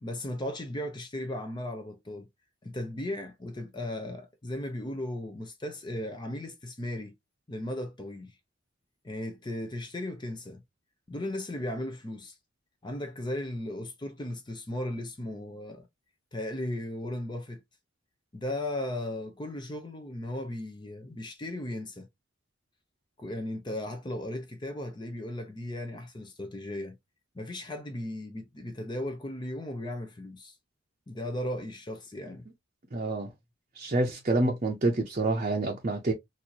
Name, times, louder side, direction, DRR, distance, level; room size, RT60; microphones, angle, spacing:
voice 1, 0.0-2.3 2.6-7.1 7.5-8.4 9.0-10.6 11.1-12.4 12.8-15.9 16.3-17.6 18.3-22.1 23.2-27.0 27.3-30.6 31.1-32.4, left 1 dB, 20° left, 0.6 m, -36 dB
voice 2, 32.9-33.3 33.7-36.1, right 2 dB, 40° right, 0.7 m, -27 dB
4.3 x 2.6 x 2.8 m
head